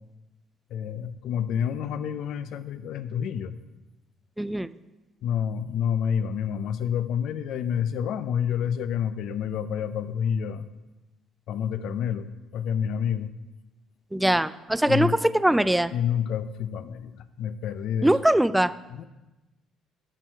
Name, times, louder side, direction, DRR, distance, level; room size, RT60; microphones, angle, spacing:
voice 1, 0.7-3.6 5.2-10.7 11.5-12.3 12.5-13.3 14.9-15.2 15.9-18.1 18.9-19.1, left 8 dB, 75° left, 12 dB, 0.5 m, -28 dB
voice 2, 4.4-4.7 14.1-15.9 18.0-18.7, right 1 dB, 5° right, 15 dB, 0.3 m, -22 dB
11.5 x 6.3 x 4.5 m, 1.0 s
cardioid pair, 100°, 0 cm